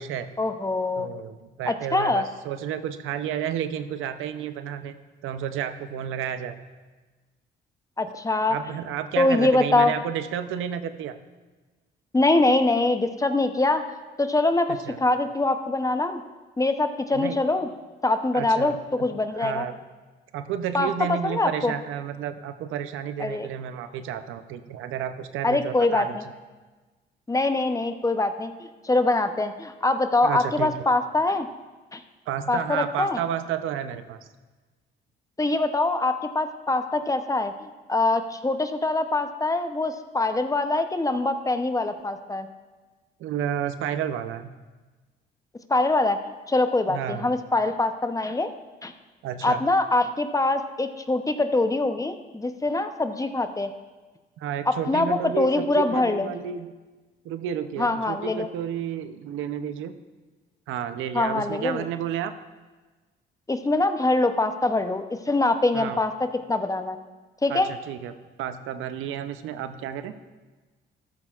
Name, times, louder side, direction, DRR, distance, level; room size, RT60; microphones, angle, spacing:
voice 1, 0.4-1.1 1.7-2.2 8.0-8.6 9.2-9.9 12.1-13.8 14.2-16.2 16.6-17.7 18.0-19.7 20.7-21.7 23.2-23.5 25.4-26.2 27.3-31.5 31.9-32.0 32.5-33.2 35.4-42.5 45.7-46.2 46.5-48.5 48.8-48.9 49.4-53.7 54.7-56.3 57.8-58.5 61.1-61.9 63.5-67.0 67.4-67.7, left 2 dB, 15° left, 8 dB, 0.7 m, -24 dB
voice 2, 1.0-4.9 5.2-6.6 8.5-11.2 14.7-15.0 17.1-17.4 18.3-19.8 20.3-26.2 30.2-30.7 32.3-34.2 43.2-44.5 46.9-47.3 49.2-49.6 54.4-56.7 57.2-59.9 60.7-62.3 65.7-66.0 67.5-68.1 68.4-70.1, right 9 dB, 90° right, 10 dB, 0.6 m, -31 dB
13.5 x 12.5 x 2.4 m, 1.3 s
cardioid pair, 90°, 20 cm